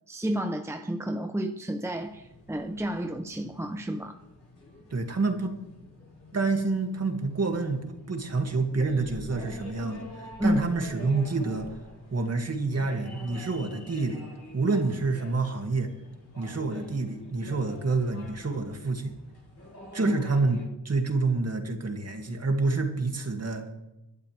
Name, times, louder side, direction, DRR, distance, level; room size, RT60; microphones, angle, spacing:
voice 1, 0.1-4.2 10.4-10.6 20.0-20.1, equal, 5° right, 6 dB, 0.8 m, -30 dB
sound 1, 1.9-20.7, left 1 dB, 35° left, 6.6 m, -47 dB
voice 2, 4.9-5.5 6.3-11.7 12.1-14.2 14.5-15.9 16.4-19.1 19.9-20.6 20.8-23.7, right 3 dB, 40° right, 4 dB, 2.4 m, -28 dB
22.0 x 12.0 x 3.5 m, 0.95 s
wide cardioid pair, 110°, 40 cm